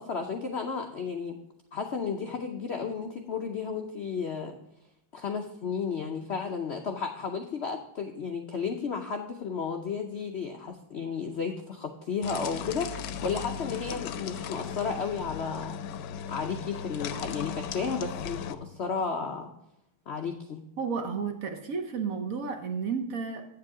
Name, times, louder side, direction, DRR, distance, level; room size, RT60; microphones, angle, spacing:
voice 1, 0.0-1.4 1.7-4.6 5.1-15.8 16.3-19.5 20.1-20.6, left 5 dB, 90° left, 4 dB, 0.5 m, -33 dB
sound 1, 12.2-18.6, left 8 dB, 75° left, 1.1 m, -37 dB
voice 2, 20.8-23.5, right 5 dB, 55° right, 5 dB, 1.1 m, -32 dB
9.1 x 7.6 x 3.7 m, 0.83 s
omnidirectional pair, 2.1 m